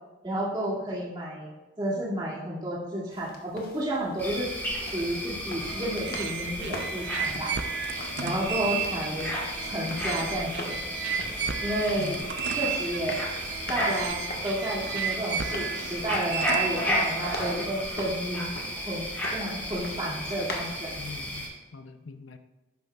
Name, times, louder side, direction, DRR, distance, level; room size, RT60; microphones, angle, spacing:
voice 1, 0.2-1.5 1.8-4.5 4.8-7.9 8.2-9.3 9.6-10.7 11.6-12.2 12.5-13.1 13.7-18.5 18.8-20.9, right 1 dB, 25° right, -5 dB, 2.3 m, -31 dB
sound 1, 3.1-20.8, left 2 dB, 50° left, 1.4 m, -44 dB
sound 2, 4.2-21.5, equal, 10° left, 3.4 m, -33 dB
sound 3, 5.6-17.6, right 7 dB, 65° right, 0.6 m, -34 dB
voice 2, 8.2-8.6 12.0-12.3 21.0-22.4, left 4 dB, 90° left, 8 dB, 0.6 m, -41 dB
11.5 x 9.5 x 2.4 m, 1.1 s
head